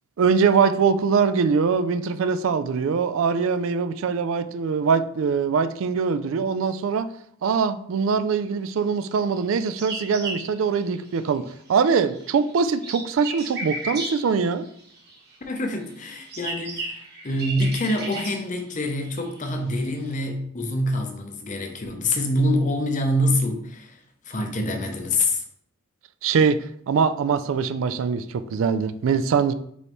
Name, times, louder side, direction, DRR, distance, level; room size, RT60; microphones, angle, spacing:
voice 1, 0.2-7.1 7.4-14.6 26.2-29.5, right 5 dB, 70° right, 0.3 m, -22 dB
sound 1, 9.3-11.5 11.8-15.3 15.9-20.2, right 2 dB, 50° right, 1.4 m, -36 dB
voice 2, 15.5-24.0 24.3-25.4, left 1 dB, 35° left, 0.6 m, -25 dB
5.4 x 3.2 x 3.0 m
head